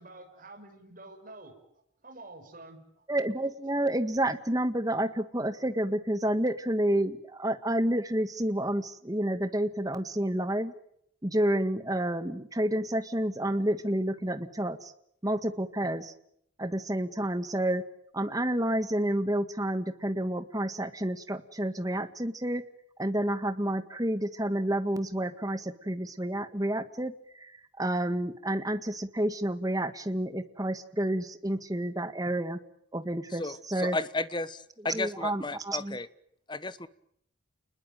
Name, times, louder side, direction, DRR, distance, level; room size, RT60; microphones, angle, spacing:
voice 1, 0.0-1.5 2.0-2.8, right 2 dB, 45° right, 4 dB, 6.5 m, -48 dB
voice 2, 3.1-10.7 11.2-14.9 15.2-16.1 16.6-17.8 18.1-22.6 23.0-32.6 32.9-34.0 34.9-36.0, right 1 dB, 20° right, 10 dB, 1.7 m, -29 dB
voice 3, 33.4-36.1 36.5-36.9, left 2 dB, 25° left, 15 dB, 1.2 m, -34 dB
30.0 x 21.0 x 9.2 m, 0.73 s
head